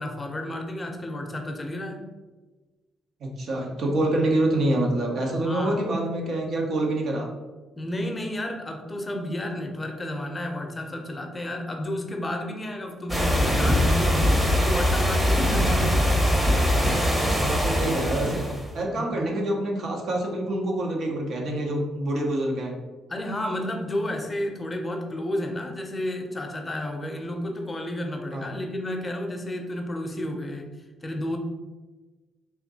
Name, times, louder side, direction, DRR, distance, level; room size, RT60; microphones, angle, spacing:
voice 1, 0.0-2.1 5.4-5.8 7.8-16.3 18.9-19.2 23.1-30.7 31.0-31.4, left 1 dB, 25° left, 3 dB, 0.6 m, -31 dB
voice 2, 3.2-7.3 17.4-18.5 18.7-22.7 28.3-28.5, right 1 dB, 65° right, 0 dB, 0.8 m, -26 dB
sound 1, 13.1-18.7, equal, 15° right, 0.8 m, -22 dB
3.6 x 2.7 x 4.1 m, 1.2 s
cardioid pair, 90°, 0 cm